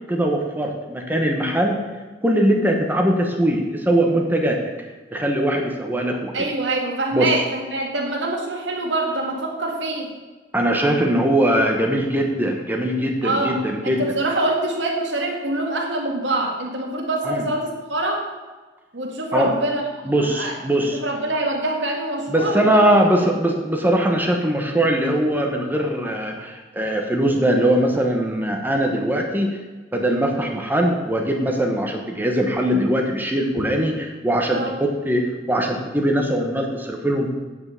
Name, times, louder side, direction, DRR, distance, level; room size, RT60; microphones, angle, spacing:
voice 1, 0.1-1.8 2.2-4.6 5.1-6.3 7.1-7.3 10.5-14.0 17.2-17.4 19.3-19.5 20.1-21.0 22.3-29.6 29.9-37.3, right 1 dB, 10° right, 2 dB, 1.1 m, -21 dB
voice 2, 6.3-10.1 13.2-13.6 13.8-18.3 18.9-20.5 20.9-22.6 22.9-23.0 34.5-34.7, right 2 dB, 75° right, 0 dB, 2.0 m, -25 dB
8.8 x 5.8 x 7.1 m, 1.3 s
head